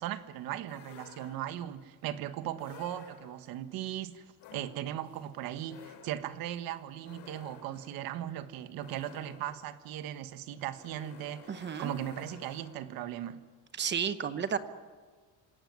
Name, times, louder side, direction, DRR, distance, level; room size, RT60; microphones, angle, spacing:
voice 1, 0.0-4.3 4.5-13.4, right 11 dB, 55° right, 1.5 m, -38 dB
sound 1, 0.7-1.8 2.6-3.6 4.4-13.1, left 8 dB, 80° left, 3.6 m, -54 dB
voice 2, 11.5-11.9 13.8-14.6, right 7 dB, 25° right, 1.0 m, -32 dB
26.5 x 17.0 x 9.6 m
cardioid pair, 175°, 41 cm